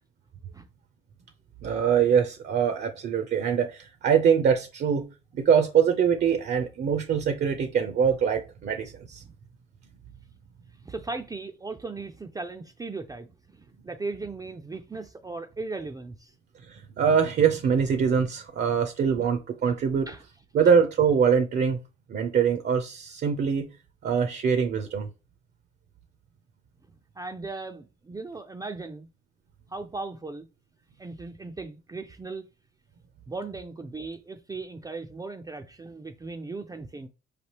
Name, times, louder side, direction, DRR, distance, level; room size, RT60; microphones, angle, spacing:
voice 1, 1.6-5.1 5.3-9.2 16.7-20.1 20.5-21.8 22.1-23.7 24.0-25.1, right 7 dB, 55° right, 0.6 m, -23 dB
voice 2, 10.9-13.3 13.8-16.3 19.2-19.3 20.1-20.2 27.2-29.1 29.7-30.5 31.0-32.5 33.3-37.1, right 3 dB, 20° right, 0.4 m, -37 dB
4.9 x 3.3 x 2.9 m
cardioid pair, 90°, 20 cm